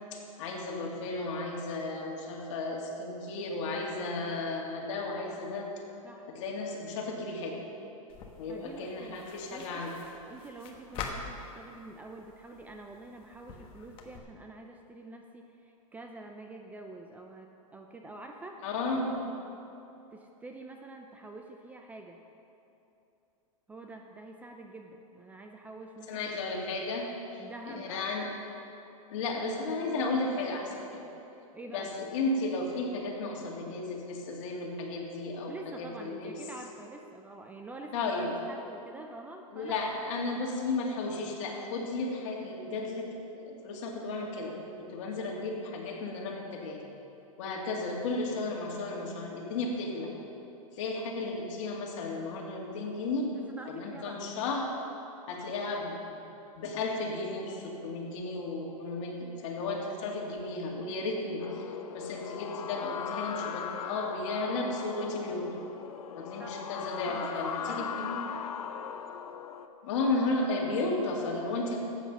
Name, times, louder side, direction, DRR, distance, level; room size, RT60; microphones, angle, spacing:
voice 1, 0.1-5.7 6.3-7.6 8.4-9.9 18.6-19.2 26.1-28.3 29.1-31.1 31.7-36.3 37.9-38.3 39.5-46.8 47.4-50.1 50.7-53.3 53.7-54.7 55.3-56.2 56.6-65.6 66.2-68.2 69.8-71.8, left 3 dB, 55° left, -1 dB, 2.4 m, -34 dB
sound 1, 8.1-14.2, left 4 dB, 30° left, 1.2 m, -45 dB
voice 2, 8.5-9.2 9.5-9.8 10.3-18.6 20.1-22.2 23.7-26.3 27.4-28.3 31.5-31.9 35.5-38.0 38.5-39.8 53.3-54.4 66.4-66.6 67.1-68.5, right 2 dB, 10° right, 3 dB, 0.5 m, -46 dB
sound 2, 61.4-69.7, left 8 dB, 80° left, 0.8 m, -39 dB
13.5 x 8.6 x 5.5 m, 2.9 s
hypercardioid pair, 145°, 18 cm